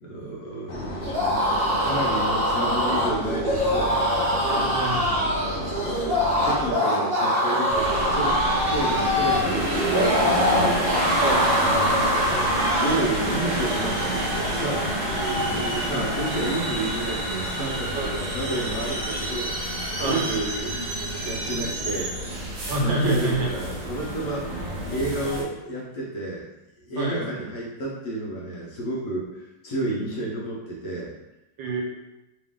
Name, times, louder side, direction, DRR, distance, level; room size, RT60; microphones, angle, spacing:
voice 1, 0.0-3.9 4.9-6.0 6.4-10.8 11.6-20.8 21.2-22.3 22.8-24.5 24.9-26.4 26.8-31.1, right 2 dB, 60° left, -5 dB, 1.2 m, -31 dB
sound 1, 0.7-6.7, left 1 dB, 85° left, 0.6 m, -34 dB
sound 2, 1.0-13.1, equal, 45° right, 0.9 m, -23 dB
voice 2, 4.5-5.0 11.2-11.5 17.9-18.1 20.0-20.2 22.7-23.5 27.0-27.2 31.6-31.8, right 2 dB, 80° right, -1 dB, 1.6 m, -26 dB
sound 3, 7.7-25.4, right 1 dB, 60° right, 1.4 m, -28 dB
3.1 x 3.1 x 3.5 m, 0.94 s
omnidirectional pair, 2.0 m